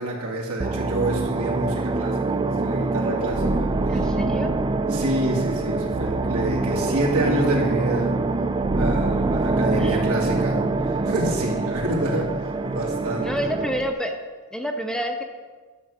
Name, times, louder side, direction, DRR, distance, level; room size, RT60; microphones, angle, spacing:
voice 1, 0.0-4.0 4.9-8.1 8.7-13.3, right 1 dB, 80° right, -2 dB, 2.5 m, -27 dB
sound 1, 0.6-13.9, right 3 dB, 20° right, 0.4 m, -25 dB
voice 2, 3.9-4.6 9.8-10.1 13.2-14.1 14.5-15.2, equal, 5° left, 3 dB, 0.7 m, -28 dB
11.5 x 6.4 x 5.6 m, 1.4 s
head